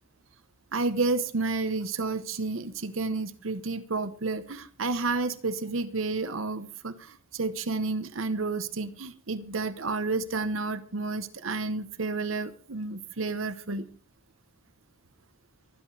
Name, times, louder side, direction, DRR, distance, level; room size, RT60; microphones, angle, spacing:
voice 1, 0.7-13.9, right 3 dB, 80° right, 1.1 m, -31 dB
24.5 x 11.0 x 3.4 m
head